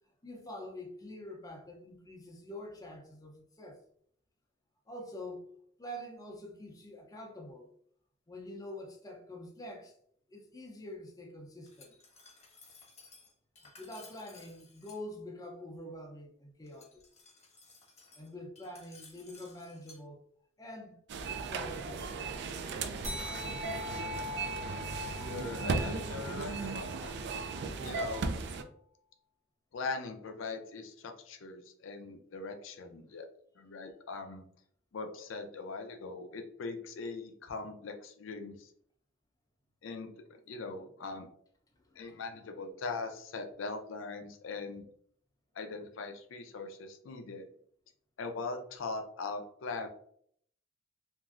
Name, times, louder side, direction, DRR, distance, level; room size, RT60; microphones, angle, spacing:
voice 1, 0.2-3.8 4.9-5.4 5.8-7.7 8.3-9.9 10.3-12.0 13.8-17.0 18.1-20.2 20.6-21.0 21.4-22.3 41.8-42.2, left 1 dB, 20° left, 0.5 m, -46 dB
Glass, 11.6-15.0 16.7-20.0, left 3 dB, 35° left, 1.1 m, -57 dB
sound 1, 21.1-28.6, right 4 dB, 60° right, 0.3 m, -36 dB
sound 2, 23.0-28.0, left 3 dB, 35° right, 0.8 m, -43 dB
voice 2, 25.2-27.2 27.8-28.3 29.7-33.3 33.6-34.4 34.9-38.7 39.8-41.3 42.0-44.8 45.6-47.5 48.2-49.9, left 3 dB, 90° left, 0.4 m, -41 dB
3.0 x 2.6 x 2.4 m
head